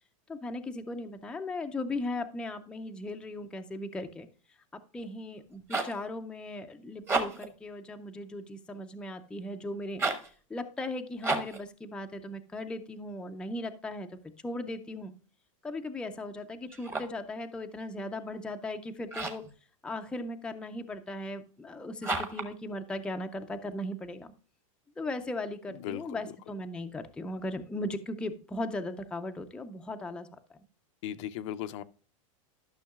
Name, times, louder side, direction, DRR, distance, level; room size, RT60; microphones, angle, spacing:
voice 1, 0.3-4.3 4.7-10.0 10.5-14.1 14.4-15.1 15.6-19.4 19.8-24.3 25.0-30.3, left 2 dB, 5° left, 0.5 m, -37 dB
sound 1, 5.4-6.0 6.9-7.6 9.9-10.3 11.2-11.6 16.7-17.2 19.1-19.5 22.0-22.5, right 3 dB, 15° right, 1.0 m, -32 dB
voice 2, 25.7-26.2 31.0-31.8, left 11 dB, 60° left, 0.6 m, -37 dB
12.0 x 6.3 x 2.3 m
supercardioid pair, 145°, 17 cm